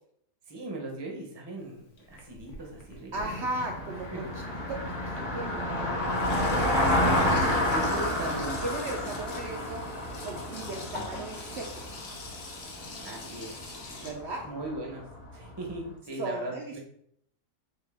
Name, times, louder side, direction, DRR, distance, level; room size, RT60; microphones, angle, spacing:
voice 1, 0.5-3.1 4.1-4.2 6.7-8.6 13.0-13.6 14.4-15.0 15.3-16.8, right 2 dB, 25° right, 0 dB, 0.7 m, -38 dB
Sink (filling or washing), 1.6-4.7 5.5-5.6 5.8-14.1, left 3 dB, 65° left, 1.1 m, -44 dB
Car passing by, 3.1-15.5, left 1 dB, 30° left, 1.0 m, -30 dB
voice 2, 3.1-6.0 8.6-9.8 10.2-11.8 14.0-14.5 16.2-16.8, right 2 dB, 65° right, 1 dB, 0.8 m, -37 dB
4.3 x 2.8 x 3.4 m, 0.68 s
omnidirectional pair, 1.4 m